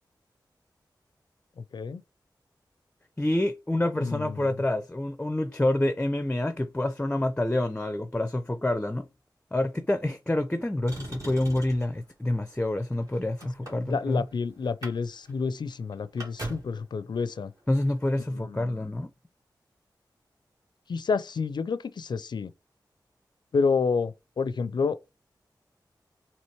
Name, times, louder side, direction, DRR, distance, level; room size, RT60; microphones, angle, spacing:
voice 1, 3.2-9.1 9.5-14.2 17.7-19.1, left 1 dB, 15° left, 0.5 m, -27 dB
voice 2, 4.0-4.5 13.7-17.5 18.3-18.9 20.9-22.5 23.5-25.0, left 5 dB, 70° left, 0.4 m, -29 dB
Motor vehicle (road), 10.9-12.0 12.8-14.3 14.6-15.0 15.2-15.3 15.7-16.8 17.9-18.0, right 1 dB, 45° right, 1.9 m, -40 dB
4.4 x 2.9 x 3.2 m
cardioid pair, 55°, 8 cm